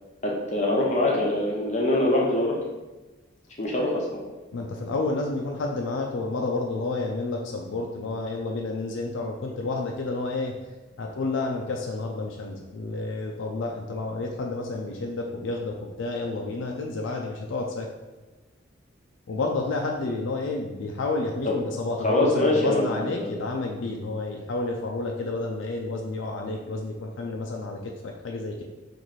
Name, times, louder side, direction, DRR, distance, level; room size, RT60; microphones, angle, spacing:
voice 1, 0.2-2.5 3.6-4.1 22.0-23.3, left 1 dB, 35° left, -2 dB, 0.7 m, -23 dB
voice 2, 4.5-10.5 11.0-17.9 19.3-28.6, left 3 dB, 80° left, 1 dB, 0.4 m, -30 dB
3.0 x 2.6 x 4.0 m, 1.1 s
head